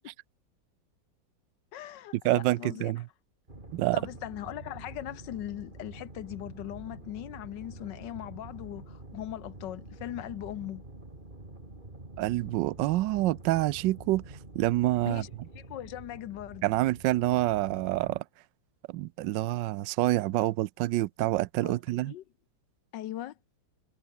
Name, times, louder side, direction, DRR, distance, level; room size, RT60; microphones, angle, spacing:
voice 1, 1.7-2.9 3.9-10.8 15.1-15.3 15.5-16.7 21.6-21.8 22.1-22.2 22.9-23.3, left 13 dB, 65° left, 1.2 m, -39 dB
voice 2, 2.2-3.0 3.7-4.0 12.2-14.2 14.5-15.2 16.6-18.2 18.9-22.1, right 16 dB, 75° right, 1.1 m, -27 dB
sound 1, 3.5-18.2, right 2 dB, 20° right, 4.0 m, -47 dB
omnidirectional pair, 2.3 m